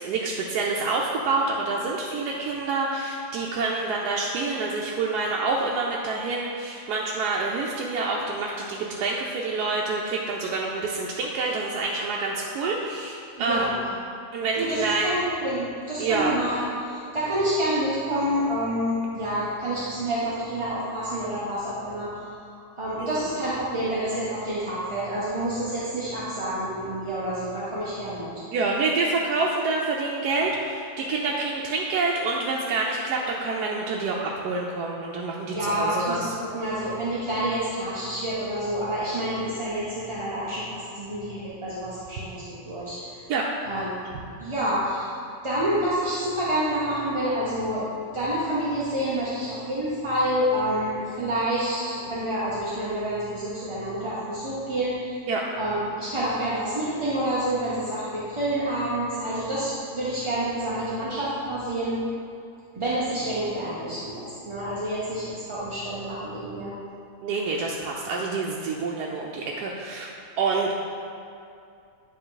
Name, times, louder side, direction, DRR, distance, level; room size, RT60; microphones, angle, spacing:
voice 1, 0.0-13.8 14.3-15.1 16.0-16.3 23.0-23.2 28.5-36.3 43.3-43.5 55.3-55.5 67.2-70.1 70.4-70.7, right 3 dB, 85° right, -2 dB, 1.2 m, -27 dB
voice 2, 13.4-13.8 14.6-22.1 22.8-28.3 35.5-43.3 43.7-44.1 44.4-45.1 45.4-47.9 48.1-55.2 55.6-62.0 62.8-66.7, right 1 dB, 25° right, -9 dB, 0.7 m, -28 dB
10.0 x 3.5 x 3.9 m, 2.5 s
omnidirectional pair, 1.6 m